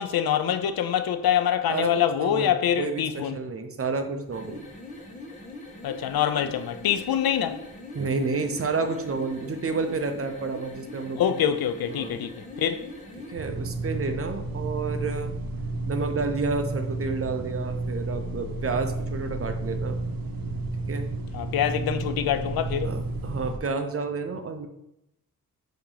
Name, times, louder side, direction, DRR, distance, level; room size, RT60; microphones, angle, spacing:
voice 1, 0.0-3.4 5.8-7.6 11.2-12.3 12.6-12.8 21.3-23.0, left 9 dB, 85° left, 0.6 m, -25 dB
voice 2, 2.2-4.6 7.9-11.4 11.9-12.2 13.3-15.4 15.9-20.0 20.9-21.1 22.8-24.7, right 4 dB, 40° right, 0.7 m, -30 dB
sound 1, 4.2-13.4, left 2 dB, 20° left, 1.3 m, -42 dB
sound 2, 13.4-23.6, right 2 dB, 75° right, 0.8 m, -32 dB
8.3 x 3.0 x 3.9 m
wide cardioid pair, 115°, 35 cm